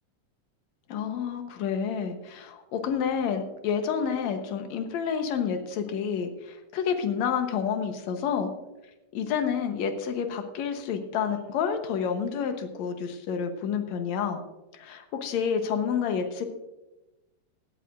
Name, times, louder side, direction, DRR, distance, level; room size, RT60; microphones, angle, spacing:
voice 1, 0.9-8.5 9.1-14.4 14.7-16.5, left 7 dB, 75° left, 6 dB, 2.3 m, -29 dB
17.5 x 12.5 x 2.6 m, 1.0 s
omnidirectional pair, 3.3 m